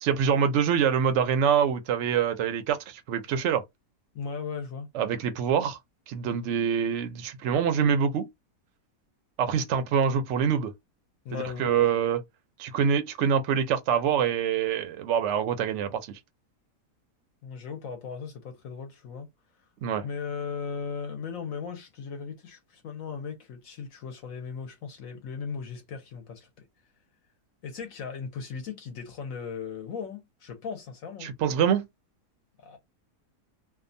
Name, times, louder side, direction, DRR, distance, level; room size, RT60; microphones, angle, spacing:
voice 1, 0.0-3.6 4.9-5.8 6.1-8.3 9.4-10.7 11.3-12.2 12.6-16.2 19.8-20.0 31.2-31.9, right 7 dB, 65° right, 0.7 m, -25 dB
voice 2, 4.1-4.9 11.2-12.0 17.4-19.3 19.6-19.7 20.0-26.6 27.6-31.3 32.6-32.8, left 6 dB, 65° left, 1.0 m, -37 dB
2.8 x 2.2 x 2.6 m
omnidirectional pair, 1.7 m